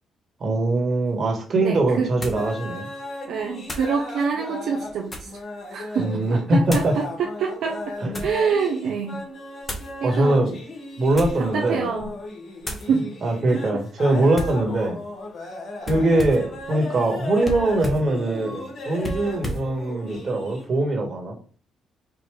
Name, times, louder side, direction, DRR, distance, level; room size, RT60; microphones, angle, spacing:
voice 1, 0.4-2.9 6.0-6.9 8.0-8.2 10.0-10.5 11.0-11.9 13.2-15.0 15.9-21.3, right 2 dB, 45° right, 2 dB, 1.5 m, -22 dB
sound 1, 1.1-1.2 2.2-2.5 3.6-4.0 4.7-5.4 6.6-7.0 7.7-8.4 9.6-9.9 11.0-11.5 11.9-12.2 12.6-12.9 14.3-14.6 15.8-16.5 17.4-18.1 19.0-19.7, equal, 25° left, 1.1 m, -33 dB
voice 2, 1.6-2.2 3.3-5.3 5.7-9.2 10.0-10.5 11.4-12.1 12.9-13.1 13.5-13.6, right 6 dB, 75° right, 0 dB, 0.6 m, -26 dB
sound 2, 2.2-5.0 5.2-20.8, left 2 dB, 50° left, 1.7 m, -36 dB
4.9 x 2.5 x 3.2 m, 0.41 s
cardioid pair, 90°, 0 cm